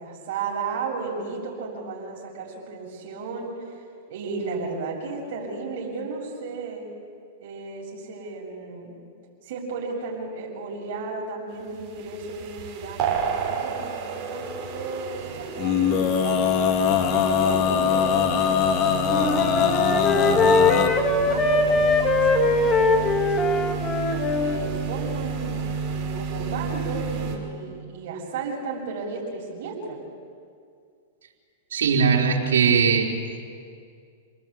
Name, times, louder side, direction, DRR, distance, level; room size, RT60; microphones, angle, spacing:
voice 1, 0.0-3.8 4.1-6.9 7.4-8.9 9.4-16.9 17.1-19.3 19.8-20.5 20.8-23.7 24.4-30.0, right 4 dB, 65° right, -3 dB, 7.2 m, -34 dB
sound 1, 11.8-27.4, right 6 dB, 35° right, 6.2 m, -32 dB
Male singing, 15.6-20.9, left 7 dB, 45° left, 2.0 m, -22 dB
Wind instrument woodwind instrument, 19.1-24.6, left 3 dB, 20° left, 2.6 m, -21 dB
voice 2, 31.7-33.1, right 6 dB, 85° right, -1 dB, 4.3 m, -20 dB
29.0 x 20.0 x 8.7 m, 2.2 s
hypercardioid pair, 125°, 0 cm